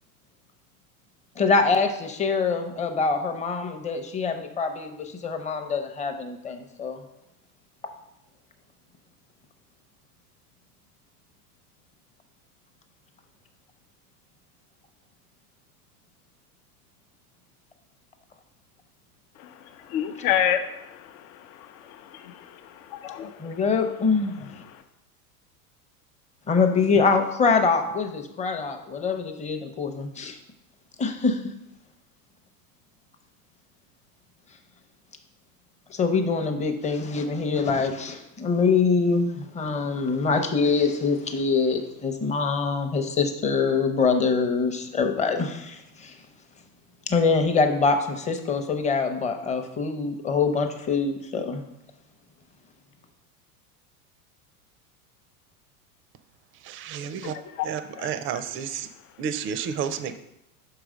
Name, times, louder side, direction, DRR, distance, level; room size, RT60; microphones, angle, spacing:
voice 1, 1.4-7.0 23.4-24.5 26.5-30.4 31.0-31.5 35.9-46.2 47.1-51.6, left 4 dB, 15° left, 6 dB, 0.7 m, -24 dB
voice 2, 19.9-21.1 21.9-23.5 57.2-57.7 58.0-58.1, left 10 dB, 65° left, 8 dB, 0.7 m, -28 dB
voice 3, 56.6-57.4 57.6-58.9 59.2-60.2, right 8 dB, 30° right, 12 dB, 0.4 m, -31 dB
6.0 x 4.8 x 5.0 m, 0.83 s
hypercardioid pair, 115°, 46 cm